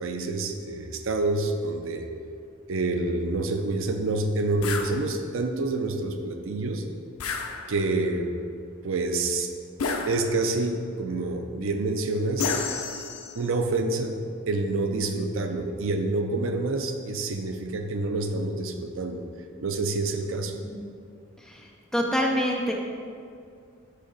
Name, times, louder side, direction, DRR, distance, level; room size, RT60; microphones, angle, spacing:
voice 1, 0.0-2.1 2.7-6.8 7.7-8.3 8.8-9.5 10.1-12.5 13.4-14.2 14.5-19.2 19.6-20.6, right 2 dB, 70° right, 6 dB, 0.5 m, -27 dB
sound 1, 4.6-4.9 7.2-8.0 9.8-10.6 12.4-13.5, left 4 dB, 85° left, 0.6 m, -31 dB
voice 2, 21.9-22.7, equal, ahead, -1 dB, 0.5 m, -25 dB
6.4 x 5.2 x 3.9 m, 2.3 s
head